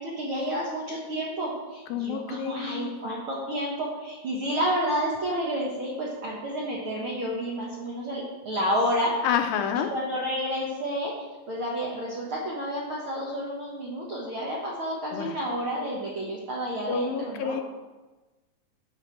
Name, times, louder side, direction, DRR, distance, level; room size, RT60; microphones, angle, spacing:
voice 1, 0.0-9.1 9.9-11.1 11.5-17.6, equal, 65° right, -4 dB, 1.3 m, -30 dB
voice 2, 1.9-2.9 9.2-9.9 15.1-15.4 16.9-17.6, left 7 dB, 90° left, 6 dB, 2.5 m, -28 dB
13.5 x 5.1 x 4.5 m, 1.2 s
omnidirectional pair, 4.2 m